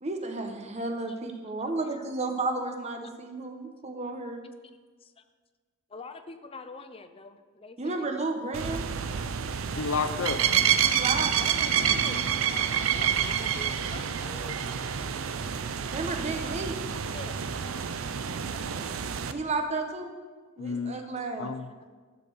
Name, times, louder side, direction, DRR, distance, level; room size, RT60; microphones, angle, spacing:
voice 1, 0.0-4.4 7.8-8.8 10.8-11.3 15.9-16.7 19.3-20.1 20.6-21.5, right 3 dB, 35° right, 4 dB, 1.0 m, -32 dB
voice 2, 5.9-8.2 11.4-15.0 15.2-15.3 17.1-17.6 18.2-18.6 20.9-21.3, left 3 dB, 30° left, 9 dB, 0.5 m, -46 dB
sound 1, 8.5-19.3, right 8 dB, 85° right, 0.5 m, -28 dB
voice 3, 9.8-10.4 11.7-12.2 20.6-21.9, left 5 dB, 90° left, 12 dB, 0.6 m, -32 dB
12.0 x 4.3 x 6.8 m, 1.4 s
head